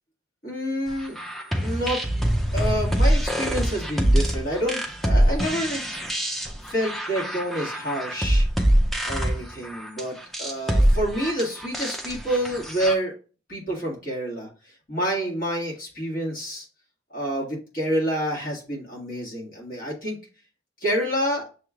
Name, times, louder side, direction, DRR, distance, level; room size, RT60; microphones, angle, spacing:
voice 1, 0.4-1.2 1.6-2.0 2.5-5.8 6.7-8.5 9.1-13.1 13.5-14.5 14.9-16.7 17.1-20.2 20.8-21.4, equal, 45° left, -3 dB, 1.7 m, -28 dB
sound 1, 1.0-12.9, equal, ahead, 0.4 m, -24 dB
6.4 x 3.1 x 2.3 m, 0.36 s
head